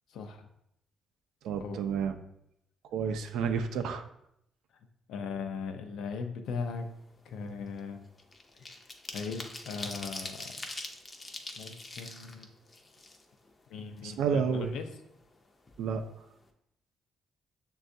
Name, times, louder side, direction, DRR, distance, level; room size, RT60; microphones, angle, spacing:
voice 1, 0.1-0.5 1.6-1.8 5.1-6.9 7.3-8.1 9.1-10.5 11.6-12.5 13.7-14.9, left 5 dB, 80° left, 5 dB, 0.5 m, -38 dB
voice 2, 1.4-2.2 2.9-4.0 14.0-14.7 15.8-16.0, right 6 dB, 85° right, 7 dB, 0.4 m, -30 dB
sound 1, 6.6-6.8 7.2-13.6 14.0-14.1 14.4-15.4 15.7-15.8 16.1-16.4, left 2 dB, 30° left, 0.5 m, -43 dB
6.2 x 2.3 x 2.6 m, 0.78 s
cardioid pair, 90°, 0 cm